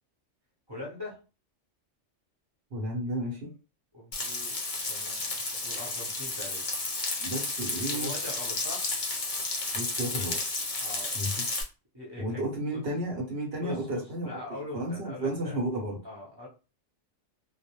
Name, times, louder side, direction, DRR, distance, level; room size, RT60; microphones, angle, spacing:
voice 1, 0.7-1.2 3.1-3.2 3.9-4.6 4.9-6.6 7.9-8.8 10.8-11.2 11.9-12.4 12.7-12.8 13.6-15.6 16.0-16.5, left 2 dB, 25° right, -4 dB, 0.7 m, -42 dB
voice 2, 2.7-3.5 7.2-8.1 9.7-10.4 11.1-11.4 12.2-16.0, right 1 dB, 60° right, 0 dB, 1.0 m, -33 dB
Frying (food), 4.1-11.6, left 3 dB, 45° left, 0.5 m, -32 dB
2.3 x 2.0 x 2.9 m, 0.32 s
omnidirectional pair, 1.3 m